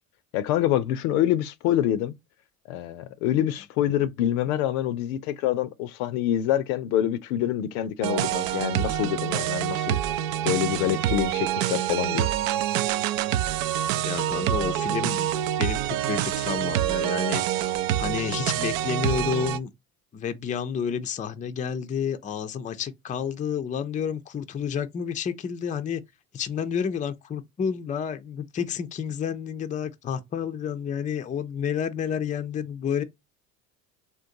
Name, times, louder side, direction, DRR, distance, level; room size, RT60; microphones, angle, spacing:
voice 1, 0.3-2.2 2.7-10.0 10.4-12.3, left 12 dB, 70° left, 0.6 m, -26 dB
sound 1, 8.0-19.6, right 12 dB, 70° right, 0.5 m, -26 dB
voice 2, 14.1-15.3 15.6-17.6 18.0-19.7 20.1-26.0 26.3-33.0, left 7 dB, 20° left, 0.4 m, -30 dB
3.8 x 2.2 x 2.6 m
hypercardioid pair, 75°, 43 cm